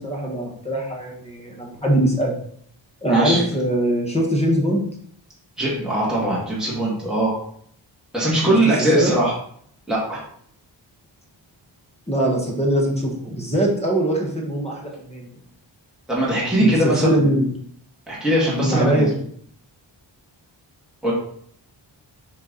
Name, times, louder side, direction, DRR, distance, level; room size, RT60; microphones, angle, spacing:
voice 1, 0.0-2.4 3.0-4.8 8.5-8.6 8.9-9.1 12.1-15.3 16.6-17.5 18.6-19.1, right 1 dB, 15° left, -2 dB, 1.4 m, -22 dB
voice 2, 3.1-3.4 5.6-7.4 8.1-9.3 9.9-10.2 16.1-17.3 18.1-19.1 21.0-21.1, right 1 dB, ahead, -7 dB, 2.2 m, -20 dB
7.0 x 4.7 x 4.1 m, 0.63 s
wide cardioid pair, 180°, 46 cm